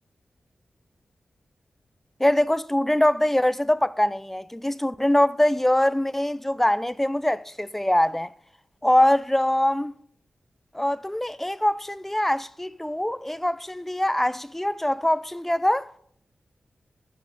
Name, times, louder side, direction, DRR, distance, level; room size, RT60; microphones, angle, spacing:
voice 1, 2.2-8.3 8.8-9.9 10.7-15.9, left 1 dB, 10° left, 0.4 m, -23 dB
14.0 x 6.7 x 5.2 m
wide cardioid pair, 80°, 3 cm